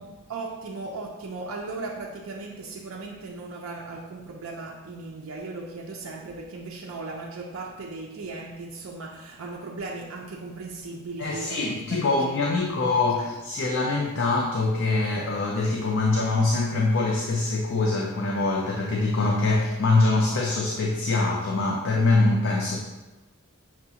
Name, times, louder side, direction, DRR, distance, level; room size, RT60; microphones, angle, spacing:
voice 1, 0.0-12.1 13.2-13.3, right 3 dB, 65° right, -1 dB, 0.4 m, -37 dB
voice 2, 11.2-22.8, left 3 dB, 60° left, -1 dB, 0.5 m, -24 dB
5.8 x 2.3 x 2.8 m, 1.1 s
head